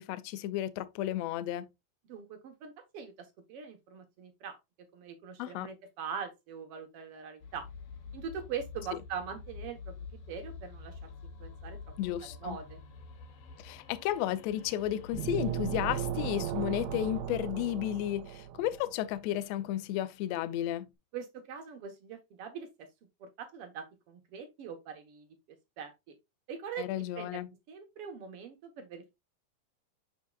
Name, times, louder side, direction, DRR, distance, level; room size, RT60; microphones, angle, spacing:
voice 1, 0.0-1.7 5.4-5.7 12.0-12.6 13.6-20.9 26.8-27.5, left 13 dB, 80° left, 1.5 m, -33 dB
voice 2, 2.1-4.6 4.9-7.7 8.1-9.9 10.3-11.1 11.4-11.8 12.2-12.8 21.1-22.9 23.2-25.4 25.8-26.1 26.5-27.4 27.7-29.1, right 7 dB, 60° right, 1.6 m, -42 dB
sound 1, 7.4-17.2, left 4 dB, 60° left, 1.6 m, -48 dB
sound 2, 15.1-18.9, right 10 dB, 85° right, 2.0 m, -36 dB
6.4 x 6.4 x 2.3 m
omnidirectional pair, 3.6 m